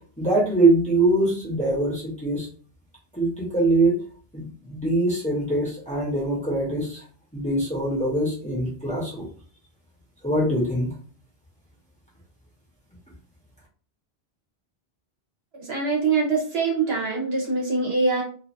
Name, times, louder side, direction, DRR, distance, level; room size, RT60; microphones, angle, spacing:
voice 1, 0.2-2.5 3.1-4.0 4.3-7.0 7.3-9.2 10.2-10.9, right 2 dB, 5° left, -5 dB, 1.0 m, -23 dB
voice 2, 15.6-18.2, right 4 dB, 70° right, -1 dB, 1.2 m, -24 dB
3.0 x 2.5 x 2.6 m, 0.42 s
omnidirectional pair, 1.1 m